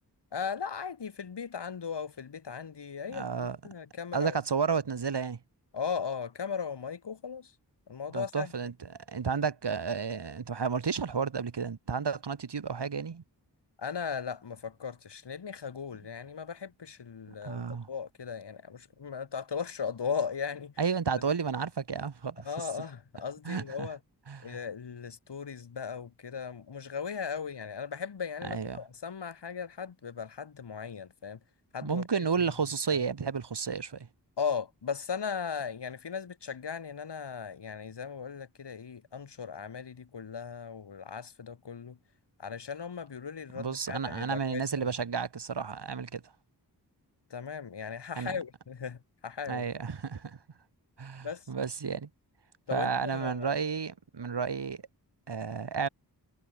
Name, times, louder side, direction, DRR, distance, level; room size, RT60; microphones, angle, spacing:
voice 1, 0.3-4.4 5.7-7.5 7.9-8.5 13.8-20.7 22.4-24.0 24.4-31.4 31.7-32.2 32.9-33.0 34.4-42.0 42.4-44.9 47.3-49.7 51.2-51.5 52.7-53.5, left 6 dB, 90° left, 3.1 m, -37 dB
voice 2, 3.1-3.6 4.1-5.4 8.1-8.7 9.1-13.2 17.4-17.9 20.8-22.5 23.5-23.9 24.3-24.6 28.4-28.8 31.8-34.1 43.5-46.2 48.2-48.4 49.5-50.4 51.0-52.1 52.7-54.8 55.3-55.9, right 5 dB, 80° right, 3.9 m, -32 dB
cardioid pair, 45°, 40 cm